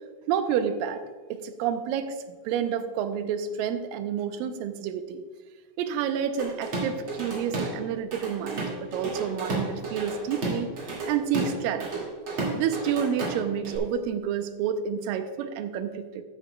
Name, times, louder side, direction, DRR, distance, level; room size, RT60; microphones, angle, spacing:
voice 1, 0.3-1.0 1.3-2.2 2.5-5.2 5.8-10.8 11.1-12.1 12.5-16.2, right 8 dB, 90° right, 9 dB, 2.4 m, -29 dB
Drum kit / Drum, 6.4-7.8 8.1-13.8, right 2 dB, 40° right, 2.6 m, -32 dB
13.5 x 9.8 x 2.2 m, 1.5 s
omnidirectional pair, 3.9 m